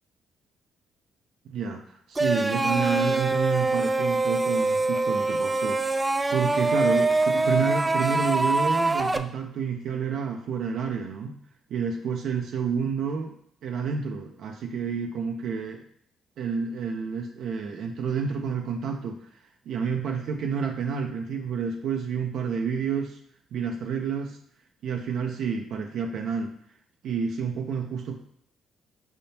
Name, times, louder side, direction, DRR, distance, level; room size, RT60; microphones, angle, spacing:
voice 1, 1.5-6.0 6.3-11.3 11.7-13.3 13.6-15.8 16.4-19.3 19.7-23.2 23.5-24.4 24.8-26.5 27.0-28.2, right 6 dB, 75° right, 2 dB, 0.5 m, -29 dB
sound 1, 2.1-9.2, right 2 dB, 20° right, 0.3 m, -24 dB
5.5 x 3.5 x 2.7 m, 0.65 s
cardioid pair, 90°, 0 cm